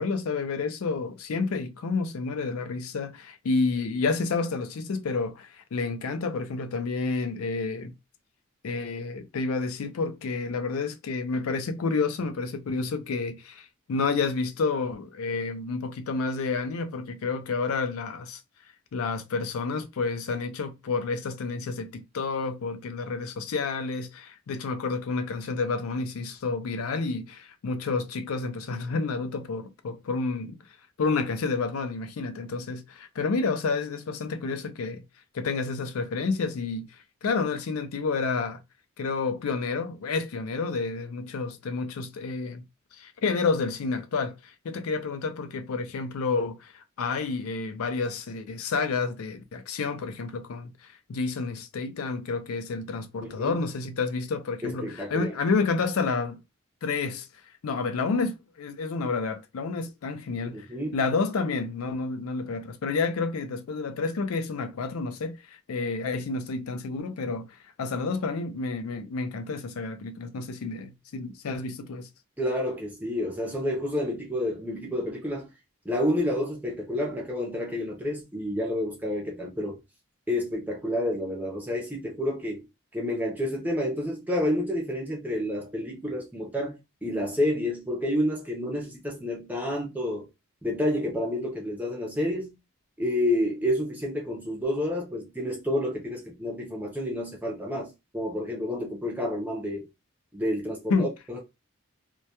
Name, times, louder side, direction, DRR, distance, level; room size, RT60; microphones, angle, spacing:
voice 1, 0.0-7.9 8.6-18.4 18.9-30.6 31.0-35.0 35.3-38.6 39.0-42.6 42.9-56.4 56.8-57.3 57.6-60.7 60.9-72.1 100.9-101.1, left 4 dB, 80° left, 0.4 m, -30 dB
voice 2, 53.2-53.6 54.6-55.3 60.4-61.0 72.4-75.5 75.8-79.8 80.3-82.6 82.9-90.3 90.6-92.6 93.0-99.8 100.3-101.4, left 1 dB, 10° right, 0.5 m, -29 dB
2.2 x 2.2 x 2.8 m
head